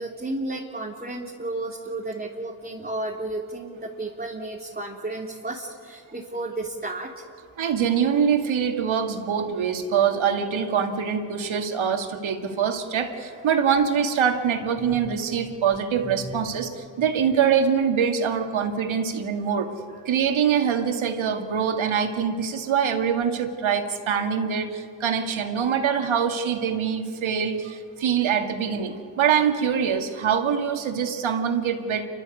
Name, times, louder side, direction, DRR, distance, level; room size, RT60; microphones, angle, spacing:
voice 1, 0.0-7.1 13.3-13.4 14.8-15.1 16.0-16.5 19.9-20.0, right 2 dB, 20° right, -3 dB, 3.4 m, -33 dB
voice 2, 7.6-19.7 20.1-32.1, right 7 dB, 70° right, 6 dB, 2.3 m, -24 dB
29.5 x 13.5 x 8.5 m, 2.4 s
hypercardioid pair, 45°, 49 cm